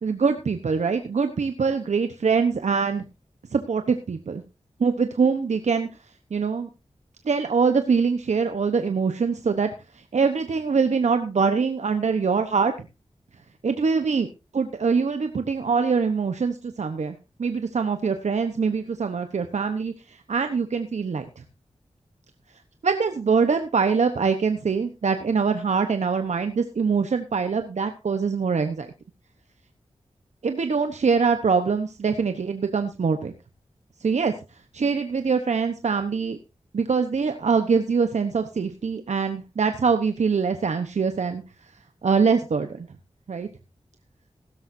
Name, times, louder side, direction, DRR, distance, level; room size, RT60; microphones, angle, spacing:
voice 1, 0.0-3.0 3.5-4.4 4.8-5.9 6.3-6.7 7.2-12.7 13.6-14.3 14.5-21.4 22.8-28.9 30.4-33.3 34.0-34.3 34.7-36.4 36.7-41.4 42.0-42.9 43.3-43.5, right 5 dB, 75° right, 8 dB, 1.0 m, -23 dB
16.0 x 12.5 x 2.7 m, 0.27 s
cardioid pair, 50°, 12 cm